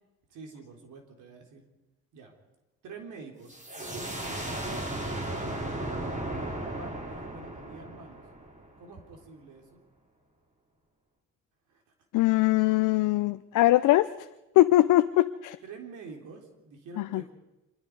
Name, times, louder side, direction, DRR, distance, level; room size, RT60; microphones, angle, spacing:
voice 1, 0.3-1.6 2.1-2.3 2.8-5.8 6.3-8.2 8.8-9.9 11.7-11.9 15.6-17.3, right 4 dB, 80° right, 2 dB, 3.7 m, -47 dB
sound 1, 3.5-9.0, right 1 dB, 25° right, 4.1 m, -36 dB
voice 2, 12.1-14.1 14.6-15.6 17.0-17.2, left 16 dB, 85° left, 11 dB, 0.6 m, -22 dB
25.5 x 22.0 x 4.8 m, 1.0 s
cardioid pair, 90°, 30 cm